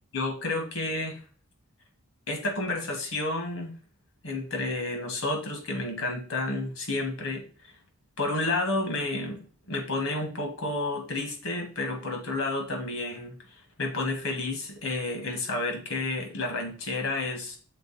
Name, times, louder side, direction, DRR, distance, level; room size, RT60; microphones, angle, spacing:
voice 1, 0.1-1.2 2.3-3.7 4.2-7.7 8.2-17.6, left 2 dB, 70° left, 3 dB, 1.8 m, -31 dB
6.7 x 3.5 x 4.3 m, 0.40 s
head